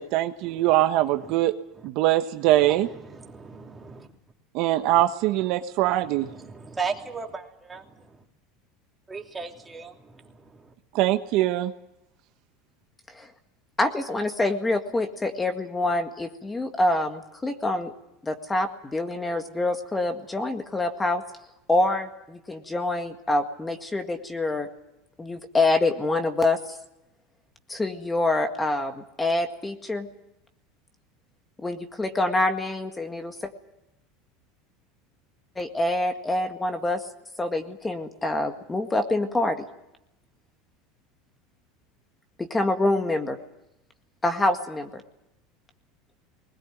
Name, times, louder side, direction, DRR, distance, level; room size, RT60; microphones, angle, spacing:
voice 1, 0.0-1.5 1.8-2.9 4.5-6.3 10.9-11.7, right 14 dB, 60° right, 8 dB, 1.2 m, -22 dB
voice 2, 2.6-4.1 4.8-4.9 6.1-7.8 9.1-10.3 10.6-10.7, right 5 dB, 15° right, 2 dB, 3.0 m, -37 dB
voice 3, 13.8-17.9 18.2-21.2 21.7-24.7 25.2-26.6 27.7-30.1 31.6-33.5 35.6-37.0 37.4-39.7 42.4-43.4 44.2-45.0, left 2 dB, 15° left, 6 dB, 1.9 m, -26 dB
21.0 x 19.0 x 9.3 m, 0.87 s
supercardioid pair, 115°, 0 cm